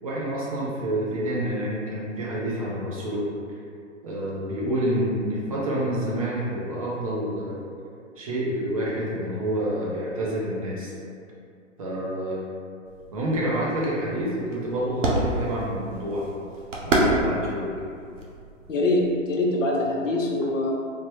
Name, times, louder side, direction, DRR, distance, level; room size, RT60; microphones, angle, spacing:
voice 1, 0.0-3.2 4.0-7.6 8.2-10.9 11.8-12.4 13.1-16.3 16.8-17.7, right 1 dB, 30° right, -5 dB, 0.4 m, -28 dB
sound 1, 12.9-19.2, right 1 dB, 75° right, 0.7 m, -29 dB
voice 2, 18.7-20.7, left 2 dB, 75° left, -2 dB, 0.7 m, -24 dB
3.2 x 2.0 x 2.9 m, 2.3 s
figure-of-eight pair, 120°, 38 cm